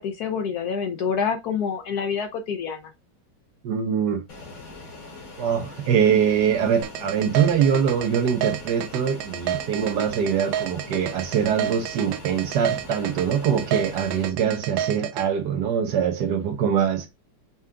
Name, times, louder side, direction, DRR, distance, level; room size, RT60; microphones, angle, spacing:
voice 1, 0.0-2.8, left 6 dB, 65° left, 1.0 m, -27 dB
voice 2, 3.6-4.2 5.4-17.1, right 8 dB, 70° right, 1.4 m, -23 dB
Fixed-wing aircraft airplane, 4.3-14.3, left 3 dB, 50° left, 1.7 m, -42 dB
sound 1, 6.8-15.2, right 10 dB, 85° right, 1.3 m, -30 dB
5.6 x 2.4 x 3.6 m
omnidirectional pair, 2.0 m